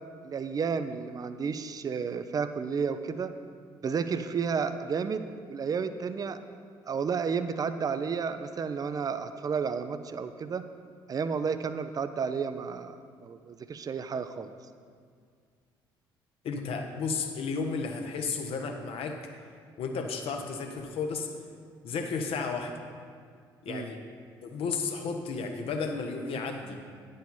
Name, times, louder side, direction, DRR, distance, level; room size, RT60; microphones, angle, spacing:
voice 1, 0.2-3.3 3.8-6.4 6.9-10.6 11.1-13.0 13.2-14.5 23.7-23.9, right 6 dB, 30° right, 11 dB, 0.5 m, -32 dB
voice 2, 16.4-19.2 19.8-21.3 21.8-22.8 23.6-24.0 24.4-26.8, left 4 dB, 55° left, 4 dB, 0.9 m, -33 dB
9.9 x 5.4 x 5.3 m, 2.1 s
figure-of-eight pair, 50°, 12 cm